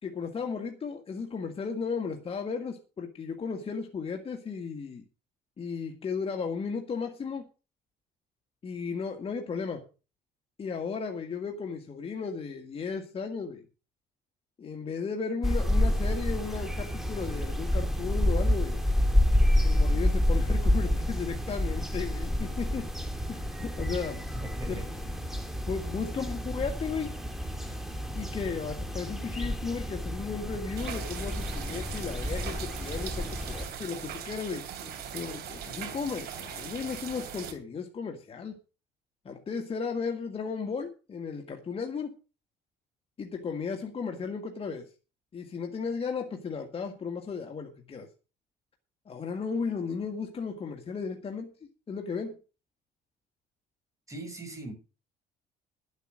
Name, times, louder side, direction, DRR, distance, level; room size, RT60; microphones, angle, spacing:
voice 1, 0.0-5.0 5.6-7.4 8.6-9.8 10.6-13.6 14.6-18.8 19.6-22.9 23.3-24.2 24.7-24.8 25.7-27.1 28.1-34.6 35.1-38.6 39.3-42.1 43.2-44.9 45.3-48.1 49.1-51.5 51.9-52.3, left 5 dB, 35° left, 3 dB, 1.9 m, -35 dB
sound 1, 15.4-33.7, left 1 dB, ahead, 2.3 m, -29 dB
voice 2, 24.4-24.8 54.1-54.7, right 2 dB, 20° right, 3 dB, 6.4 m, -40 dB
sound 2, 30.8-37.5, right 8 dB, 70° right, 3.3 m, -40 dB
11.5 x 8.3 x 6.4 m, 0.33 s
cardioid pair, 110°, 17 cm